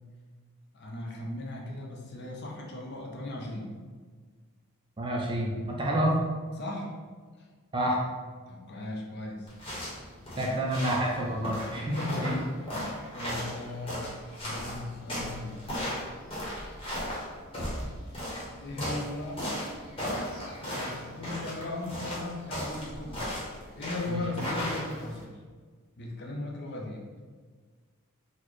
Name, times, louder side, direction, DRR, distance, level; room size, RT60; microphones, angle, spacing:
voice 1, 0.7-3.7 6.0-6.1 6.6-6.9 7.4-7.5 8.5-9.5 9.9-10.1 10.3-10.5 11.7-14.1 14.4-15.6 18.6-19.4 20.6-23.3 23.7-25.4 26.0-27.0, left 2 dB, 50° left, -1 dB, 0.6 m, -37 dB
voice 2, 5.0-6.2 7.7-8.0 10.3-11.9 12.2-12.3 24.1-24.2, right 1 dB, 20° right, -2 dB, 0.4 m, -28 dB
sound 1, 9.5-25.2, equal, 25° left, 0.9 m, -36 dB
4.0 x 2.1 x 3.1 m, 1.5 s
head